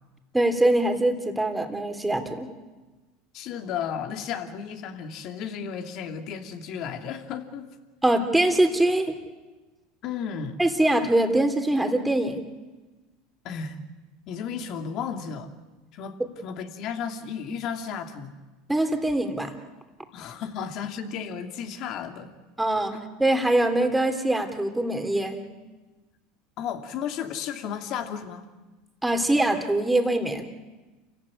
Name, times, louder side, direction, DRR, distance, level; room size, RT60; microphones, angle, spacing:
voice 1, 0.3-2.5 8.0-9.2 10.6-12.4 18.7-19.5 22.6-25.4 29.0-30.5, right 1 dB, 5° right, 6 dB, 3.3 m, -23 dB
voice 2, 3.3-7.7 10.0-10.6 13.4-13.8 14.3-15.6 15.9-16.2 16.4-18.3 20.1-22.3 22.9-23.0 26.6-28.4, left 7 dB, 55° left, 6 dB, 2.7 m, -33 dB
28.5 x 15.5 x 9.9 m, 1.2 s
hypercardioid pair, 90°, 0 cm